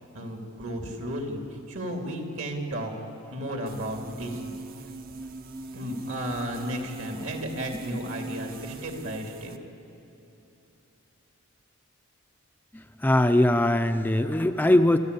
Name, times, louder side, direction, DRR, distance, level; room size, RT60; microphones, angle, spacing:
voice 1, 0.1-2.9 3.3-4.5 5.7-9.5, equal, 65° right, 3 dB, 2.9 m, -33 dB
sound 1, 3.7-9.6, right 3 dB, 45° right, 0.8 m, -41 dB
voice 2, 12.7-15.0, left 1 dB, 10° left, 7 dB, 0.5 m, -22 dB
27.0 x 13.0 x 8.3 m, 2.9 s
head